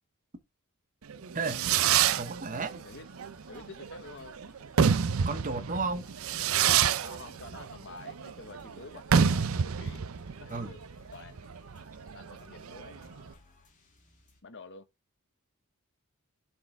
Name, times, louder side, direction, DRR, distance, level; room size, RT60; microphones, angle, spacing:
Fireworks, 1.1-13.3, right 7 dB, 70° right, 0.5 m, -28 dB
sound 1, 2.1-14.4, left 2 dB, 35° left, 2.5 m, -60 dB
voice 1, 2.2-2.8 5.2-6.0 10.5-10.7, right 4 dB, 35° right, 0.8 m, -33 dB
voice 2, 3.5-4.3 7.0-10.1 10.4-10.8 11.1-11.7 12.1-13.4 14.4-14.8, left 4 dB, 55° left, 1.1 m, -48 dB
7.6 x 4.6 x 3.3 m
head